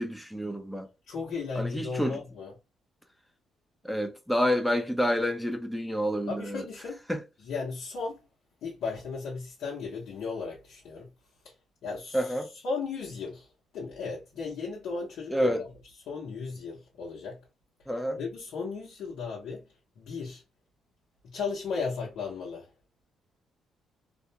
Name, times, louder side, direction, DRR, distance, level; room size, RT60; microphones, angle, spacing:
voice 1, 0.0-0.9 1.6-2.2 3.8-6.7 7.1-7.2 12.1-12.5 15.3-15.7 17.9-18.2, equal, ahead, 0.6 m, -28 dB
voice 2, 1.1-2.5 6.3-7.0 7.4-8.2 8.6-11.1 11.8-12.2 12.6-13.5 13.7-15.7 16.1-17.5 18.2-19.6 20.0-20.4 21.2-22.7, left 4 dB, 75° left, 0.9 m, -35 dB
2.4 x 2.1 x 2.8 m
cardioid pair, 90°, 0 cm